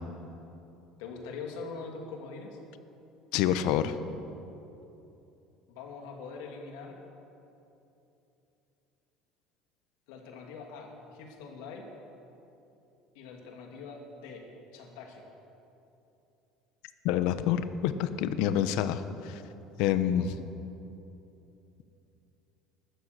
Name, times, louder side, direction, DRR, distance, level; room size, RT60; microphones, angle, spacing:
voice 1, 1.0-2.6 5.7-7.0 10.1-11.9 13.1-14.4 14.7-15.2 20.1-20.2, left 4 dB, 85° left, 2 dB, 2.5 m, -43 dB
voice 2, 3.3-3.9 17.0-19.4 19.8-20.3, left 10 dB, 70° left, 12 dB, 0.8 m, -27 dB
14.5 x 12.5 x 6.7 m, 2.9 s
cardioid pair, 165°, 0 cm